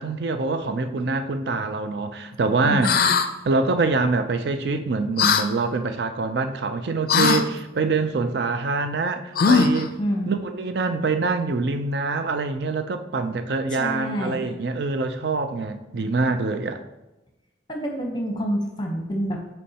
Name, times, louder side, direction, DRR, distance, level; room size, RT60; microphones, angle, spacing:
voice 1, 0.0-3.0 3.5-10.0 10.3-16.8, right 3 dB, 65° right, 9 dB, 0.4 m, -25 dB
voice 2, 2.6-3.2 10.0-10.3 13.7-14.4 17.7-19.4, equal, 25° left, 1 dB, 0.8 m, -27 dB
sound 1, 2.8-3.3 5.2-5.5 7.1-7.4 9.4-9.9, left 5 dB, 50° left, 0.4 m, -19 dB
8.4 x 4.5 x 2.9 m, 0.97 s
head